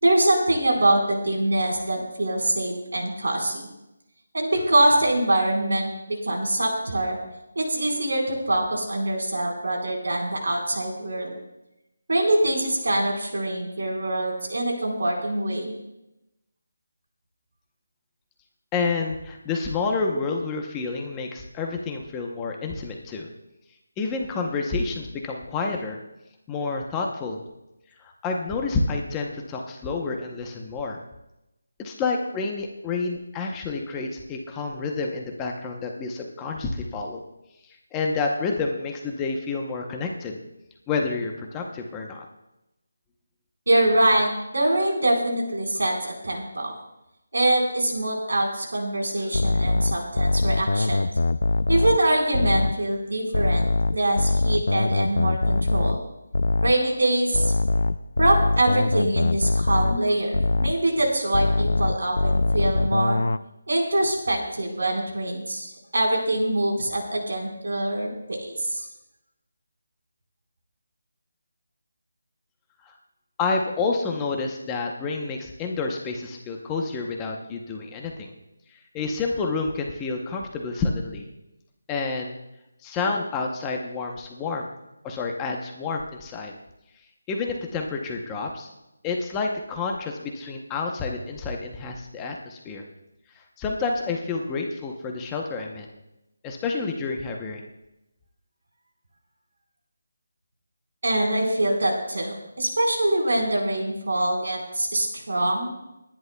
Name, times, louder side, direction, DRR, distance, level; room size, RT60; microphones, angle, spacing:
voice 1, 0.0-3.6 4.3-7.2 7.5-11.3 12.1-15.7 43.7-46.7 47.3-51.1 51.7-56.0 56.6-57.5 58.2-63.2 63.7-68.8 101.0-105.7, right 1 dB, 75° right, 0 dB, 4.4 m, -24 dB
voice 2, 18.7-23.3 24.0-26.0 26.5-27.4 28.0-31.0 31.8-37.2 37.6-40.4 40.9-42.3 72.9-73.0 73.4-78.3 78.7-81.3 81.9-82.4 82.8-84.7 85.0-86.5 87.3-88.7 89.0-92.8 93.6-95.9 96.4-97.7, left 4 dB, 10° left, 1 dB, 0.8 m, -29 dB
sound 1, 49.3-52.8 53.3-56.9 57.3-60.9 61.3-63.4, left 2 dB, 75° left, 0.4 m, -23 dB
29.0 x 10.5 x 2.3 m, 0.91 s
figure-of-eight pair, 175°, 0 cm